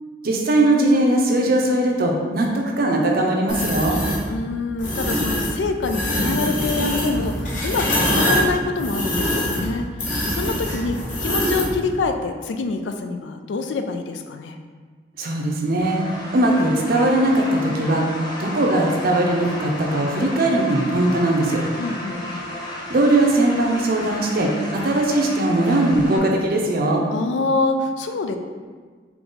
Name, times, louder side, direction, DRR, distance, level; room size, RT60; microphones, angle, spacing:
voice 1, 0.2-4.0 15.2-21.6 22.9-27.0, right 1 dB, 55° right, 0 dB, 0.6 m, -20 dB
sound 1, 3.5-4.2 4.8-5.5 5.8-11.7, equal, 45° left, 0.9 m, -23 dB
voice 2, 4.3-9.9 10.2-14.6 21.8-22.5 27.1-28.4, left 3 dB, 75° left, 6 dB, 0.4 m, -26 dB
sound 2, 15.8-26.2, left 1 dB, 25° left, 0.7 m, -33 dB
3.8 x 2.9 x 3.8 m, 1.5 s
head